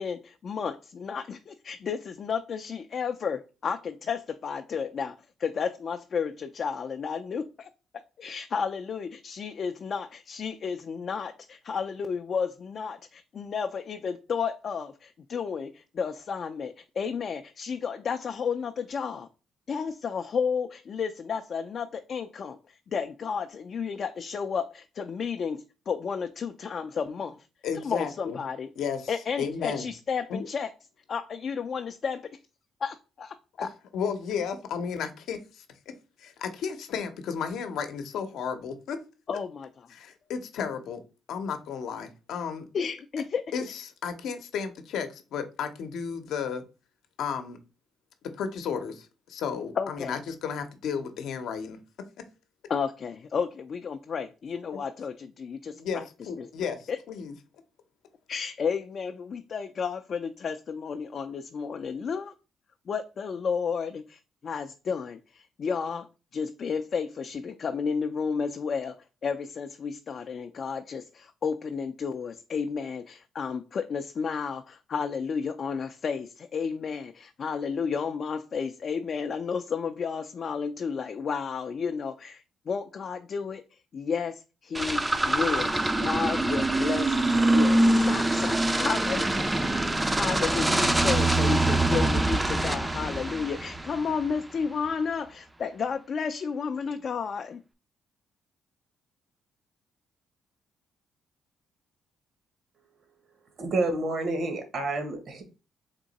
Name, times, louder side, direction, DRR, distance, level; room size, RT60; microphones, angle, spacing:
voice 1, 0.0-7.7 8.2-19.3 19.7-27.5 27.7-28.7 29.1-30.7 31.1-32.3 32.8-33.7 39.3-39.9 42.7-43.4 49.8-50.2 52.7-56.0 56.4-57.0 58.3-62.3 62.9-66.1 66.3-69.0 69.2-89.7 90.2-97.6, left 6 dB, 50° left, 0.4 m, -32 dB
voice 2, 27.6-28.4 28.8-29.1 29.4-29.9 30.3-30.5 33.9-35.6 36.2-39.0 39.9-41.0 41.3-42.6 43.5-46.6 47.2-47.6 48.4-51.8 55.8-57.3, left 6 dB, 80° left, 0.7 m, -33 dB
sound 1, 84.7-94.3, right 2 dB, 15° right, 0.4 m, -24 dB
voice 3, 103.6-105.4, right 2 dB, 60° right, 1.2 m, -29 dB
3.7 x 2.8 x 3.9 m
cardioid pair, 90°, 0 cm